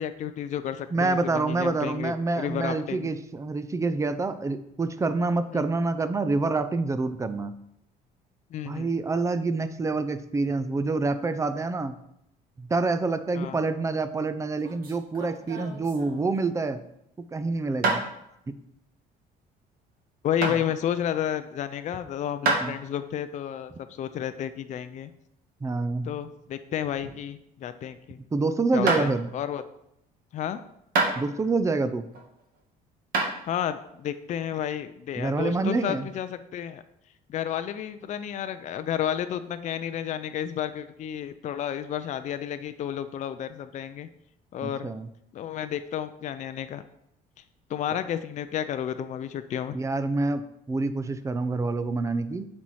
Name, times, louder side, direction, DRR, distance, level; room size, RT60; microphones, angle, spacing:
voice 1, 0.0-3.1 8.5-8.9 13.3-13.6 20.2-25.1 26.0-28.2 28.7-29.6 30.3-30.6 33.5-36.8 37.3-44.1 44.5-44.9 45.3-46.8 47.7-49.8, left 10 dB, 45° left, 10 dB, 0.4 m, -31 dB
voice 2, 0.9-7.5 8.6-11.9 12.6-16.8 17.3-18.0 18.5-18.6 22.6-22.8 25.6-26.1 28.3-29.3 31.2-32.1 35.2-36.1 44.6-45.1 49.7-50.4 50.7-52.5, right 3 dB, 20° right, 11 dB, 0.5 m, -27 dB
sound 1, 14.4-16.5 17.8-18.0 20.4-20.6 22.4-22.7 25.9-27.3 27.6-28.0 28.9-29.1 30.9-31.6 32.1-32.6 33.1-33.3, right 3 dB, 60° right, 1.8 m, -28 dB
7.2 x 4.3 x 4.7 m, 0.78 s
cardioid pair, 110°, 17 cm